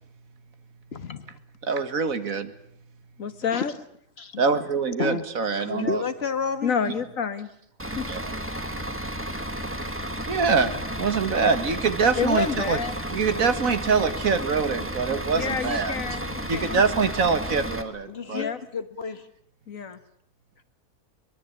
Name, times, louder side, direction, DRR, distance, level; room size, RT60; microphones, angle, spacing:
voice 1, 0.9-1.3 3.5-3.7 4.2-4.4 5.0-5.3 5.6-6.8 11.0-11.1 18.1-19.3, left 4 dB, 50° left, 1.7 m, -31 dB
voice 2, 1.6-2.6 4.4-6.0 8.1-8.2 10.3-12.8 13.1-15.9 16.5-18.5, right 5 dB, 80° right, 2.1 m, -24 dB
voice 3, 3.2-3.7 5.6-5.9 6.6-7.5 7.9-8.1 12.2-12.9 15.3-16.8 18.3-18.6 19.7-20.0, left 6 dB, 75° left, 1.9 m, -28 dB
Bus / Idling, 7.8-17.8, right 1 dB, 10° right, 1.7 m, -32 dB
23.5 x 21.5 x 8.3 m
omnidirectional pair, 1.4 m